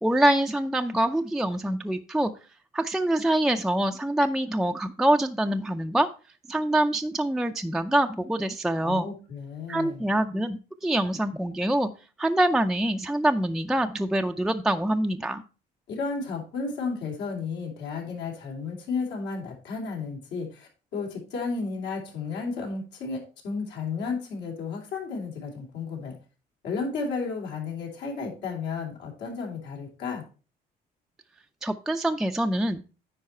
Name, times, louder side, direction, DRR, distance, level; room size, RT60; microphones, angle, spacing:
voice 1, 0.0-2.3 2.7-6.1 6.5-9.1 9.7-11.9 12.2-15.4 31.6-32.8, right 1 dB, 5° right, 5 dB, 0.4 m, -25 dB
voice 2, 8.8-10.0 15.9-26.2 26.6-30.2, left 4 dB, 85° left, 0 dB, 3.0 m, -33 dB
9.6 x 4.6 x 4.3 m, 0.35 s
cardioid pair, 110°, 17 cm